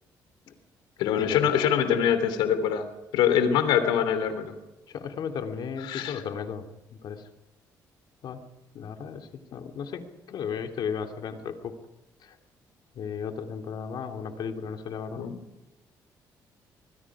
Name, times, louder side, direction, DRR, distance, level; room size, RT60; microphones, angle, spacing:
voice 1, 1.0-2.9 3.1-4.5 5.9-6.2 15.2-15.4, left 9 dB, 90° left, 9 dB, 3.2 m, -24 dB
voice 2, 4.9-6.6 6.9-7.2 8.2-8.4 8.7-11.7 12.2-12.4 12.9-15.2, left 6 dB, 70° left, 4 dB, 3.1 m, -35 dB
26.0 x 21.0 x 5.0 m, 0.99 s
supercardioid pair, 75°, 8 cm